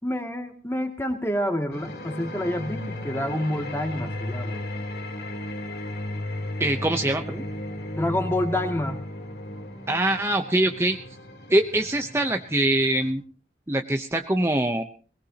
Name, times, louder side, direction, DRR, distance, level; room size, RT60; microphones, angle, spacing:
voice 1, 0.0-4.6 7.9-9.0, left 1 dB, 15° left, 4 dB, 2.3 m, -28 dB
sound 1, 1.7-13.1, left 1 dB, 65° left, 3.3 m, -35 dB
voice 2, 6.6-7.4 9.9-11.0 11.5-13.2 13.7-14.8, right 1 dB, 15° right, 5 dB, 0.8 m, -23 dB
22.0 x 20.5 x 2.9 m, 0.40 s
head